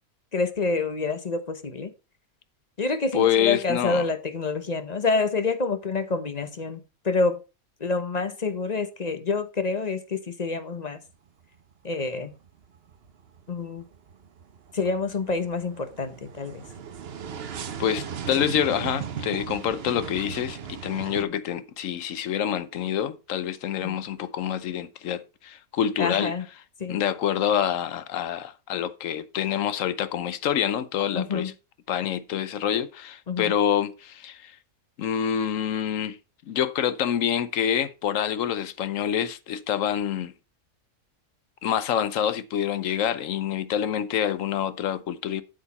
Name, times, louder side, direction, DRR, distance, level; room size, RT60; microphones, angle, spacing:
voice 1, 0.3-1.9 2.8-7.4 7.8-11.0 11.8-12.3 13.5-13.8 14.7-16.6 23.8-24.0 26.0-26.4 26.8-27.0 31.1-31.5 33.3-33.5, left 4 dB, 35° left, 0.9 m, -27 dB
voice 2, 3.1-4.1 17.8-26.3 26.9-31.5 31.9-34.5 35.0-36.2 36.5-40.3 41.6-45.4, left 9 dB, 65° left, 1.1 m, -27 dB
sound 1, 11.1-11.7 12.0-21.2, right 7 dB, 50° right, 0.9 m, -37 dB
8.4 x 8.0 x 4.1 m
omnidirectional pair, 1.5 m